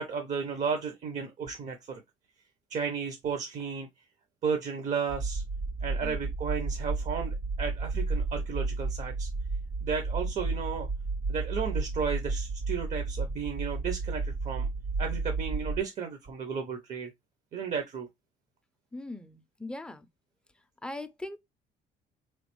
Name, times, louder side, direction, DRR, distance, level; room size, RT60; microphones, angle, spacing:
voice 1, 0.0-2.0 2.7-3.9 4.4-5.4 5.8-9.3 9.8-10.9 11.3-14.7 15.0-17.1 17.5-18.1, right 6 dB, 45° right, 0.7 m, -33 dB
sound 1, 5.1-15.8, right 3 dB, 75° right, 1.7 m, -32 dB
voice 2, 18.9-20.1 20.8-21.4, left 2 dB, 5° left, 0.4 m, -41 dB
3.7 x 3.1 x 3.0 m
cardioid pair, 110°, 17 cm